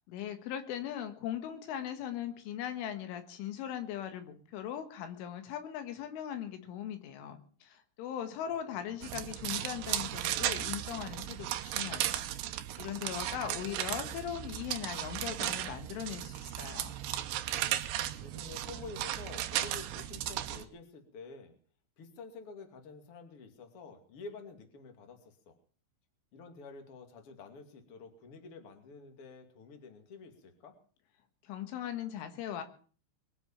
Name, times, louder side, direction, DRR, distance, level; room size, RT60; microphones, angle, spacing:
voice 1, 0.1-12.3 12.8-16.9 31.4-32.6, left 10 dB, 90° left, 8 dB, 4.1 m, -39 dB
voice 2, 8.7-9.0 18.2-21.6 22.0-25.6 26.3-30.8, left 4 dB, 35° left, 5 dB, 2.6 m, -49 dB
sound 1, 9.0-20.6, right 13 dB, 75° right, 2.8 m, -36 dB
22.5 x 8.2 x 7.2 m, 0.43 s
omnidirectional pair, 5.5 m